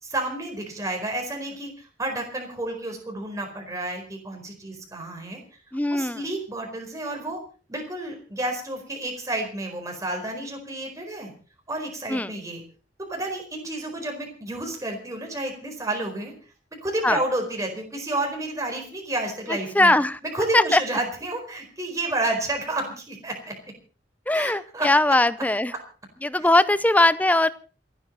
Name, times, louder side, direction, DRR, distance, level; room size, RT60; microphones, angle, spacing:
voice 1, 0.0-5.4 5.9-7.4 7.7-11.3 11.7-12.6 13.0-16.3 16.8-19.9 20.2-23.5 24.3-25.2 26.4-26.5, right 2 dB, 20° right, 1 dB, 4.6 m, -30 dB
voice 2, 5.7-6.2 12.1-12.3 17.0-17.2 19.7-20.2 20.5-20.8 24.3-25.7 26.2-27.5, left 1 dB, 10° left, 16 dB, 0.7 m, -20 dB
28.5 x 10.0 x 4.1 m, 0.38 s
head